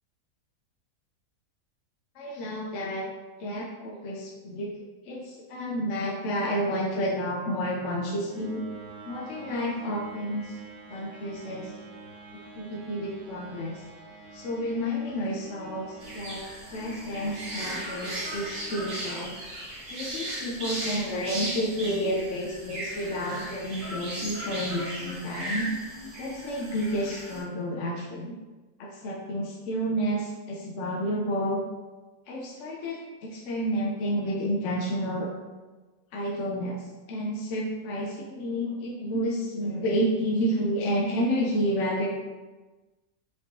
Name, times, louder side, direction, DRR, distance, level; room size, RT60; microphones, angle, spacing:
voice 1, 2.2-3.1 3.4-4.7 5.0-8.6 9.1-10.6 10.9-11.7 12.6-13.8 14.3-16.4 16.7-19.4 19.9-25.7 26.2-28.3 28.8-31.6 32.3-35.3 36.1-42.1, equal, 65° left, -2 dB, 0.7 m, -30 dB
sound 1, 6.9-20.0, right 3 dB, 70° right, 1.4 m, -47 dB
sound 2, 16.0-27.4, right 1 dB, 85° right, 1.5 m, -36 dB
5.0 x 3.0 x 2.7 m, 1.2 s
omnidirectional pair, 1.7 m